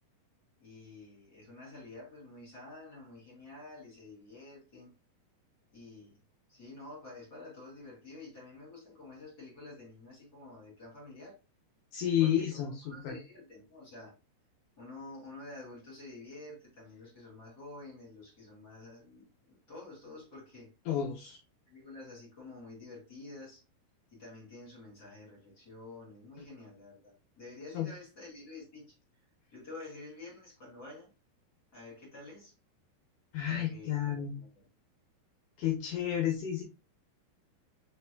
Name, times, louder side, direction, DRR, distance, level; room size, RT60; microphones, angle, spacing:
voice 1, 0.6-4.9 5.7-6.2 6.5-11.4 12.2-14.1 14.8-20.7 21.7-23.6 24.1-29.0 29.5-31.1 31.7-32.5 33.5-34.7, left 2 dB, 30° left, 2.2 m, -49 dB
voice 2, 11.9-13.1 20.9-21.4 27.7-27.9 33.3-34.3 35.6-36.6, left 10 dB, 75° left, 1.9 m, -31 dB
5.1 x 4.6 x 2.2 m
omnidirectional pair, 4.7 m